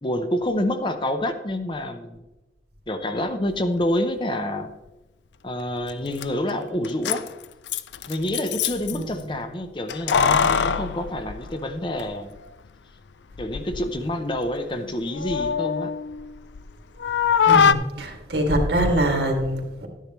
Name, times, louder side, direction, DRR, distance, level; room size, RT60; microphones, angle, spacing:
voice 1, 0.0-2.2 2.9-4.7 5.4-7.3 8.1-12.3 13.4-15.9, left 1 dB, 25° left, 7 dB, 0.7 m, -27 dB
Keys jangling, 5.9-6.0 6.2-6.3 6.8-9.0 9.9-12.0 12.4-12.5 13.3-13.9 14.2-16.7 17.0-17.7, left 7 dB, 90° left, 0.5 m, -23 dB
voice 2, 8.9-9.3 17.4-19.9, right 1 dB, 75° right, 2 dB, 2.2 m, -24 dB
13.0 x 10.0 x 3.1 m, 1.0 s
head